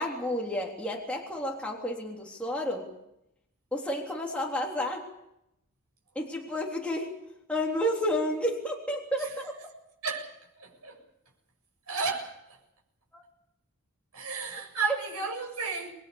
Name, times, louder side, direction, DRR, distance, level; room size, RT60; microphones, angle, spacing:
voice 1, 0.0-2.9 3.7-5.1 6.2-7.2 7.5-9.5 13.1-13.2 14.8-15.0, left 1 dB, 5° left, 3.5 m, -31 dB
voice 2, 10.0-11.0 11.9-12.4 14.1-15.9, right 5 dB, 85° right, 7.7 m, -33 dB
29.0 x 21.5 x 7.2 m
head